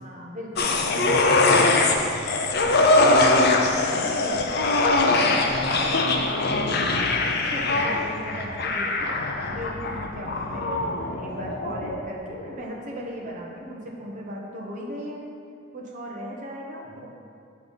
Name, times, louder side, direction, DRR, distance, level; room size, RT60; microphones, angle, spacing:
voice 1, 0.0-0.9 2.6-3.0 4.0-5.1 5.6-5.7 7.5-9.1 9.5-15.2 15.7-17.1, equal, 35° right, -2 dB, 1.1 m, -37 dB
sound 1, 0.6-12.1 12.4-12.5, left 2 dB, 45° left, 0.6 m, -22 dB
voice 2, 0.9-2.3 2.6-3.9 5.1-7.0 7.8-8.0 10.7-11.2 16.8-17.1, equal, 80° left, -6 dB, 1.5 m, -37 dB
7.1 x 5.0 x 5.6 m, 2.4 s
head